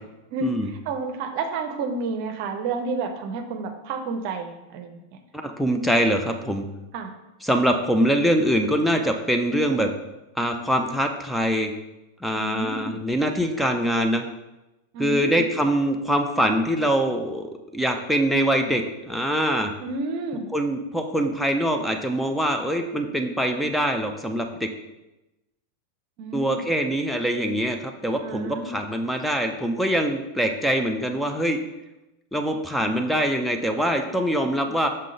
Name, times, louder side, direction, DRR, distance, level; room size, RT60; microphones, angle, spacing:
voice 1, 0.3-5.0 6.9-7.1 12.4-13.0 14.9-15.4 19.8-20.5 26.2-26.6 28.2-28.7, right 3 dB, 45° right, 7 dB, 0.6 m, -30 dB
voice 2, 5.4-6.7 7.4-9.9 10.4-11.7 12.2-14.2 15.0-17.5 17.7-19.7 20.5-24.7 26.3-31.6 32.3-34.9, equal, ahead, 4 dB, 0.5 m, -23 dB
5.5 x 3.7 x 5.0 m, 1.0 s
figure-of-eight pair, 90°, 0 cm